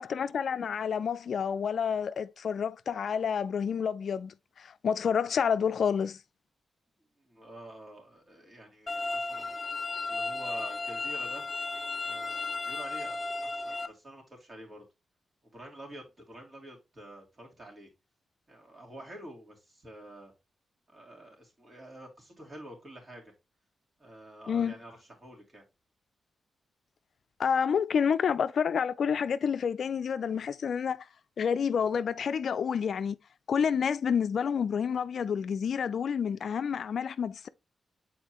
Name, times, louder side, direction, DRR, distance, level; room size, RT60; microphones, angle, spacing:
voice 1, 0.0-6.2 24.5-24.7 27.4-31.1 31.4-33.2 33.5-37.5, left 7 dB, 70° left, 0.3 m, -29 dB
voice 2, 7.2-11.4 12.0-14.8 15.5-17.9 18.5-20.3 20.9-23.3 24.0-25.6, right 1 dB, 40° right, 2.9 m, -48 dB
sound 1, 8.9-13.9, left 3 dB, 20° left, 1.6 m, -34 dB
7.4 x 4.3 x 3.0 m
cardioid pair, 70°, 0 cm